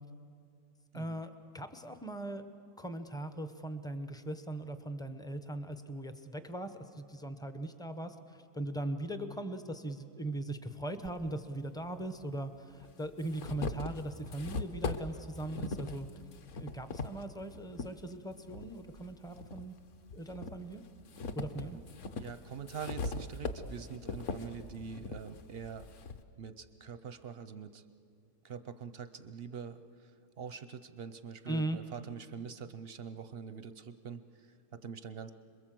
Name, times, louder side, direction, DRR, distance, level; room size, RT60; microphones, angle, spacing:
voice 1, 0.9-2.4 2.8-16.1 16.5-19.8 20.1-20.8 21.3-21.8 31.5-31.8, right 1 dB, 5° left, 9 dB, 0.4 m, -39 dB
sound 1, 11.0-11.1 12.2-12.3 12.8-17.9 18.5-19.6 20.1-26.2, left 3 dB, 55° left, 1.2 m, -40 dB
voice 2, 22.2-25.9 26.4-27.8 28.4-30.1 30.4-35.3, right 6 dB, 55° right, 12 dB, 0.6 m, -44 dB
27.0 x 21.5 x 7.7 m, 2.3 s
omnidirectional pair, 1.8 m